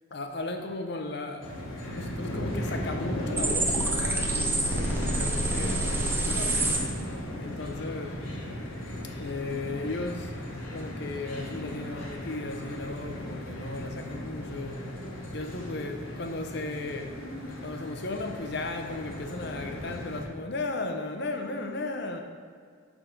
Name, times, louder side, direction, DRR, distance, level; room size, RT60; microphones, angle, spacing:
voice 1, 0.1-1.5 1.9-6.9 7.4-8.2 9.2-14.8 15.3-17.1 17.6-22.2, left 2 dB, 55° left, 5 dB, 0.7 m, -36 dB
sound 1, 1.4-20.2, left 1 dB, 90° left, 1.4 m, -36 dB
sound 2, 3.3-6.8, right 2 dB, 10° right, 0.7 m, -27 dB
11.0 x 3.7 x 5.1 m, 2.1 s
head